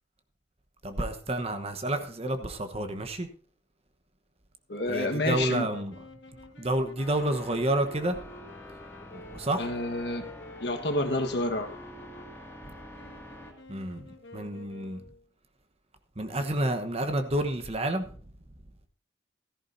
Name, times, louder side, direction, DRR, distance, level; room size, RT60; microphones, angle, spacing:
voice 1, 0.8-3.3 4.8-5.9 6.6-8.2 9.3-9.8 12.7-12.8 13.7-15.0 16.2-18.2, right 1 dB, 35° right, 1.1 m, -30 dB
voice 2, 4.7-5.7 9.6-10.3 10.6-11.7, left 2 dB, 65° left, 1.5 m, -29 dB
sound 1, 5.2-15.2, left 2 dB, 85° left, 1.8 m, -49 dB
sound 2, 7.0-13.5, left 1 dB, 15° left, 2.4 m, -46 dB
15.5 x 14.0 x 2.7 m
head